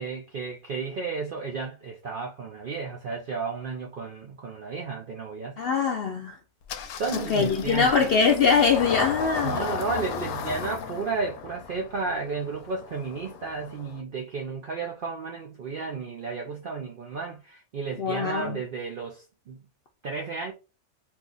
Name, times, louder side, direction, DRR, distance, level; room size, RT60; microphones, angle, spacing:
voice 1, 0.0-5.6 7.0-8.1 9.4-19.6 20.0-20.5, right 4 dB, 65° right, 0.5 m, -33 dB
voice 2, 5.6-6.4 7.3-9.6 18.0-18.6, left 5 dB, 65° left, 0.6 m, -23 dB
Engine starting, 6.7-14.0, left 6 dB, 85° left, 1.0 m, -34 dB
2.7 x 2.5 x 3.8 m
omnidirectional pair, 1.5 m